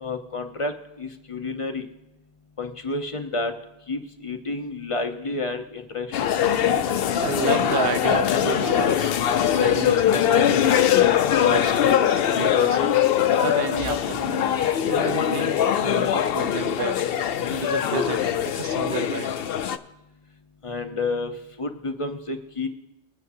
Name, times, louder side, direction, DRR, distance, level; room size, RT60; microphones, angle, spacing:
voice 1, 0.0-1.9 2.6-3.5 3.9-6.3 20.6-21.3 21.6-22.7, left 2 dB, 30° left, 5 dB, 0.9 m, -30 dB
sound 1, 6.1-19.8, left 9 dB, 65° left, 0.7 m, -22 dB
voice 2, 7.2-9.1 9.5-11.0 11.5-13.1 13.4-14.5 14.8-17.1 17.5-19.3, right 7 dB, 65° right, 8 dB, 1.0 m, -31 dB
22.0 x 9.1 x 2.7 m, 0.93 s
omnidirectional pair, 1.1 m